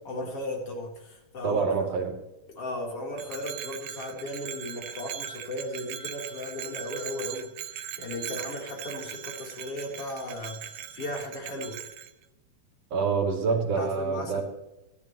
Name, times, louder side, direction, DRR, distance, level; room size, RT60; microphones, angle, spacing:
voice 1, 0.1-1.7 2.6-7.5 8.0-11.8 13.5-14.4, left 1 dB, 50° left, -1 dB, 4.3 m, -36 dB
voice 2, 1.4-2.2 12.9-14.4, right 5 dB, 55° right, 2 dB, 3.5 m, -26 dB
Bell, 3.2-12.1, right 10 dB, 70° right, 1.9 m, -40 dB
25.0 x 11.5 x 3.0 m, 0.95 s
omnidirectional pair, 3.5 m